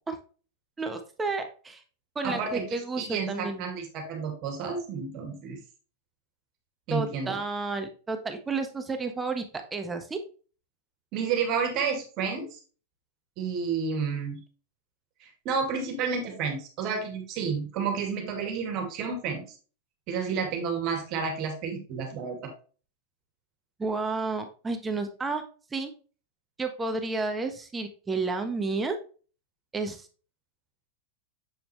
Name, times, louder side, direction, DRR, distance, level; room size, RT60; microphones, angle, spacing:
voice 1, 0.8-1.8 2.1-3.7 6.9-10.2 23.8-25.4 25.7-25.9 26.6-29.0 29.7-30.1, right 3 dB, 15° right, 6 dB, 1.2 m, -31 dB
voice 2, 2.2-5.6 6.9-7.4 11.1-12.6 13.4-14.4 15.2-19.4 20.1-22.5, right 5 dB, 50° right, 4 dB, 2.2 m, -31 dB
7.5 x 4.7 x 3.2 m, 0.37 s
hypercardioid pair, 110°, 0 cm